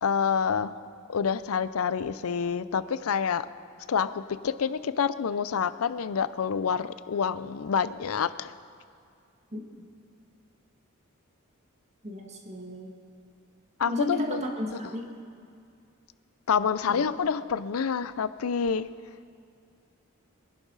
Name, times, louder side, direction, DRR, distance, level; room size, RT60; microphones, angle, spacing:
voice 1, 0.0-0.7 1.1-3.5 3.9-8.5 13.8-14.5 14.7-14.8 16.5-18.9, left 6 dB, 80° left, 14 dB, 0.5 m, -27 dB
voice 2, 12.0-12.9 13.9-15.1 16.9-17.0, left 1 dB, 30° right, 1 dB, 1.8 m, -33 dB
23.5 x 11.0 x 4.0 m, 2.4 s
head